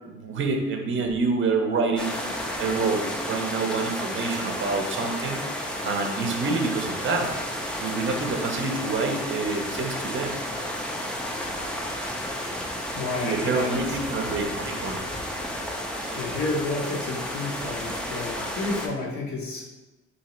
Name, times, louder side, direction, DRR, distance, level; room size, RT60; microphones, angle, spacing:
voice 1, 0.0-5.5 5.8-7.3 7.8-10.4 13.2-15.0 15.7-15.8, right 4 dB, 40° right, 3 dB, 0.6 m, -27 dB
sound 1, 2.0-18.9, equal, 5° left, 0.4 m, -32 dB
voice 2, 12.9-14.0 16.2-19.7, left 3 dB, 65° left, -2 dB, 1.0 m, -31 dB
2.8 x 2.8 x 4.2 m, 1.1 s
cardioid pair, 90°, 30 cm